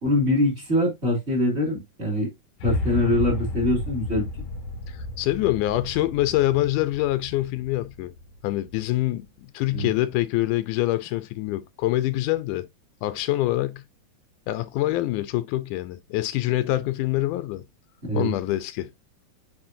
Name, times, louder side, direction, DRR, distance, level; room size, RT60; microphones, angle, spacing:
voice 1, 0.0-2.3 2.6-4.2 9.7-9.9 18.0-18.3, left 1 dB, 20° right, 3.2 m, -23 dB
sound 1, 2.6-8.8, left 2 dB, 60° left, 1.5 m, -33 dB
voice 2, 4.9-8.1 8.4-12.7 13.0-13.8 14.5-17.6 18.1-18.9, left 16 dB, 85° left, 2.1 m, -25 dB
8.8 x 4.3 x 2.6 m
omnidirectional pair, 3.6 m